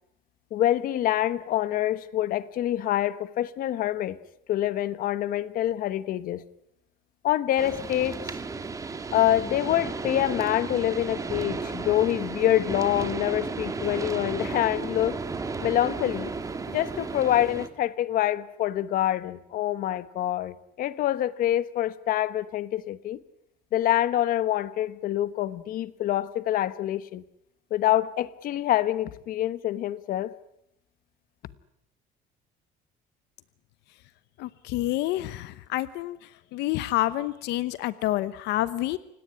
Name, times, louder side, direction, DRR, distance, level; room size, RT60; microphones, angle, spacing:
voice 1, 0.5-4.2 4.5-6.4 7.2-8.2 9.1-15.2 15.6-16.3 16.7-23.2 23.7-27.2 27.7-30.3, left 13 dB, 55° left, 1.1 m, -26 dB
sound 1, 7.6-17.7, right 4 dB, 20° right, 1.9 m, -34 dB
voice 2, 34.4-36.2 36.5-39.0, left 15 dB, 75° left, 0.9 m, -28 dB
29.0 x 17.5 x 9.8 m
cardioid pair, 150°, 18 cm